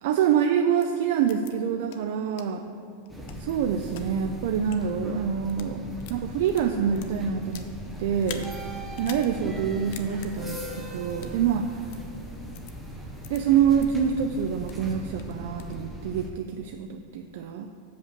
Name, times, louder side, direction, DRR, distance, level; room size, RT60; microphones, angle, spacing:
voice 1, 0.0-2.6 3.4-7.7 8.0-8.5 9.0-11.8 13.3-17.7, right 8 dB, 55° right, 5 dB, 0.4 m, -26 dB
sound 1, 0.8-0.9 1.3-1.5 1.9-2.0 2.4-2.5 3.0-4.0 4.6-4.8 5.4-5.7 6.0-7.7 8.2-8.5 8.9-9.3 9.6-9.7 9.9-10.3 11.1-11.4 11.9-12.0 12.5-12.7 13.2-13.4 13.8-13.9 14.3-14.8 15.2-15.8, left 9 dB, 50° left, 0.6 m, -44 dB
sound 2, 3.1-16.3, equal, ahead, 0.6 m, -39 dB
6.7 x 5.3 x 7.1 m, 2.3 s
supercardioid pair, 175°, 0 cm